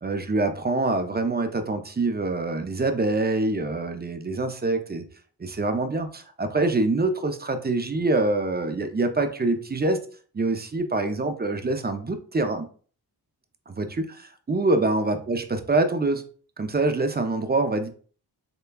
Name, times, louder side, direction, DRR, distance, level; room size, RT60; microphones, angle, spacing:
voice 1, 0.0-5.0 5.4-10.0 10.3-12.7 13.7-16.2 16.6-17.9, right 2 dB, 25° right, 7 dB, 0.4 m, -25 dB
6.6 x 2.2 x 2.2 m, 0.42 s
wide cardioid pair, 75°, 41 cm